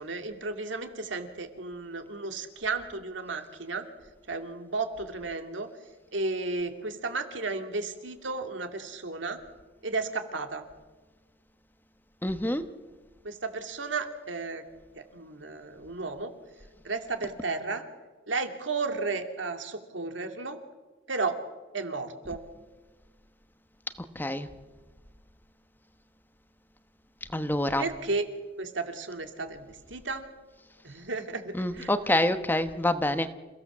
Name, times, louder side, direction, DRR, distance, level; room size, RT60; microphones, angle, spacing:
voice 1, 0.0-3.9 4.3-5.7 6.1-9.4 9.8-10.6 13.2-14.6 14.9-16.3 16.8-17.9 18.3-20.6 21.1-21.4 21.7-22.4 27.8-28.3 28.6-30.3 30.8-31.9, right 3 dB, 75° right, 6 dB, 2.5 m, -33 dB
voice 2, 12.2-12.6 24.1-24.5 27.3-27.8 31.6-33.3, left 1 dB, 10° left, 10 dB, 1.0 m, -26 dB
28.5 x 16.5 x 7.3 m, 1.3 s
head